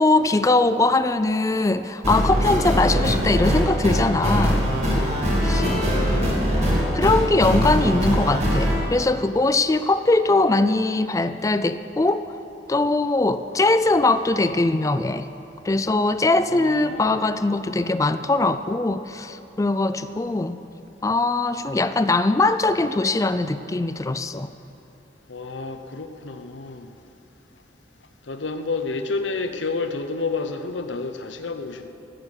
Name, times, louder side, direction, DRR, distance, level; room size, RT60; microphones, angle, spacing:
voice 1, 0.0-4.6 4.9-5.0 5.4-5.6 6.9-12.2 12.7-15.3 15.6-20.6 21.0-24.5, left 2 dB, 15° left, 12 dB, 0.3 m, -21 dB
sound 1, 2.0-8.8, equal, 35° right, 2.5 m, -21 dB
voice 2, 5.4-6.4 16.5-17.3 25.3-27.0 28.3-31.9, left 3 dB, 85° left, 8 dB, 0.9 m, -30 dB
15.0 x 6.8 x 8.7 m, 3.0 s
head